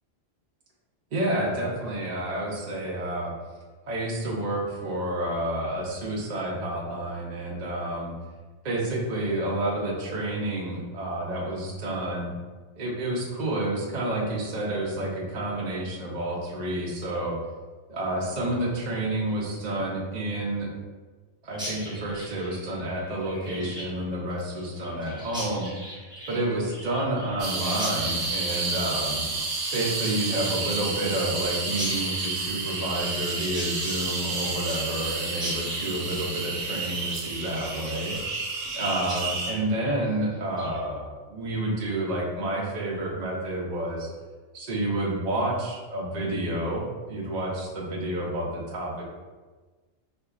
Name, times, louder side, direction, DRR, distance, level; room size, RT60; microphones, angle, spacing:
voice 1, 1.1-3.3 3.9-8.1 8.6-12.3 12.7-17.4 17.9-20.7 21.4-25.7 26.3-29.2 29.7-38.2 38.7-44.1 44.5-49.0, right 1 dB, 50° right, -3 dB, 0.6 m, -29 dB
Chirp tweet, 21.5-38.8 39.1-39.2 39.5-39.9 40.3-40.8, equal, 5° right, 0.6 m, -40 dB
sound 1, 27.4-39.5, right 3 dB, 75° right, 1.0 m, -30 dB
4.3 x 2.2 x 2.4 m, 1.3 s
omnidirectional pair, 1.2 m